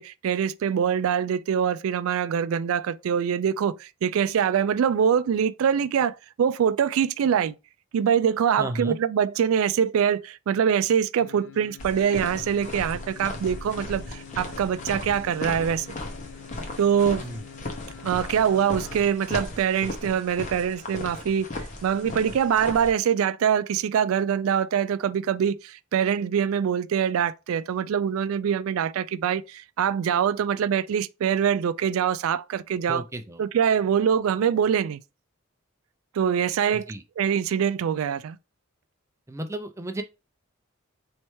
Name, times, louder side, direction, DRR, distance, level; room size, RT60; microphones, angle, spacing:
voice 1, 0.0-7.5 7.9-15.9 16.8-17.3 18.0-21.5 21.8-33.0 33.4-35.0 36.2-36.9 37.2-38.4, right 8 dB, 90° right, 0.3 m, -24 dB
voice 2, 8.6-9.0 17.2-17.4 32.9-33.4 36.9-37.0 39.3-40.0, right 1 dB, 15° right, 0.4 m, -33 dB
sound 1, 11.2-19.0 19.4-19.5, left 7 dB, 60° left, 0.5 m, -46 dB
sound 2, 11.8-22.9, left 2 dB, 35° left, 0.9 m, -37 dB
4.4 x 3.2 x 3.0 m
head